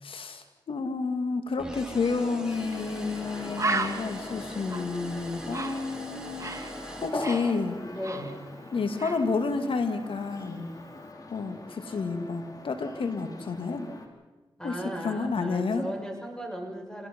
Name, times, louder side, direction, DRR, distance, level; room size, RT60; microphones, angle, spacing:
voice 1, 0.0-6.6 7.0-7.8 8.7-10.7 11.3-13.9 14.6-15.9, left 4 dB, 75° left, 7 dB, 2.5 m, -30 dB
sound 1, 1.6-7.8, right 1 dB, 10° right, 4.3 m, -42 dB
sound 2, 2.0-14.1, left 2 dB, 40° left, 4.0 m, -42 dB
Bird, 2.7-2.9 3.2-3.3 3.6-6.7 7.0-8.7 9.0-9.3, right 3 dB, 35° right, 2.3 m, -34 dB
voice 2, 7.9-8.5 14.6-17.1, equal, 5° left, 2 dB, 6.9 m, -37 dB
27.5 x 19.0 x 5.6 m, 1.2 s
cardioid pair, 40°, 9 cm